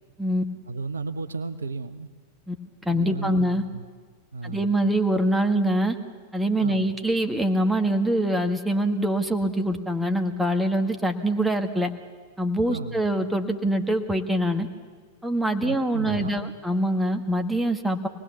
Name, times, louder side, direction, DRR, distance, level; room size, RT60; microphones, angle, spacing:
voice 1, 0.7-2.1 2.9-3.8 4.3-4.7 6.6-6.9 12.7-13.0 15.6-16.5, right 3 dB, 70° right, 11 dB, 0.8 m, -34 dB
voice 2, 2.9-3.6 4.4-6.0 6.3-11.9 12.4-14.7 15.2-18.1, right 1 dB, 5° right, 5 dB, 1.8 m, -24 dB
25.0 x 19.5 x 7.3 m, 1.5 s
figure-of-eight pair, 90°, 0 cm